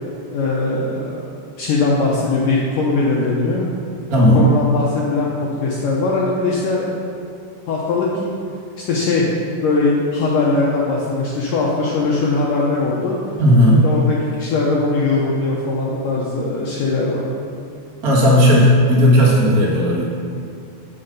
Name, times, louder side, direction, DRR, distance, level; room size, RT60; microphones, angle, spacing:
voice 1, 0.3-1.2 1.6-3.6 4.3-5.3 5.6-7.0 7.7-8.3 8.9-9.3 9.6-13.2 13.8-17.3, left 3 dB, 75° left, -4 dB, 2.0 m, -20 dB
voice 2, 4.1-4.5 13.4-13.8 18.0-20.1, equal, 75° right, -5 dB, 0.8 m, -13 dB
8.9 x 6.4 x 5.2 m, 2.5 s
omnidirectional pair, 4.8 m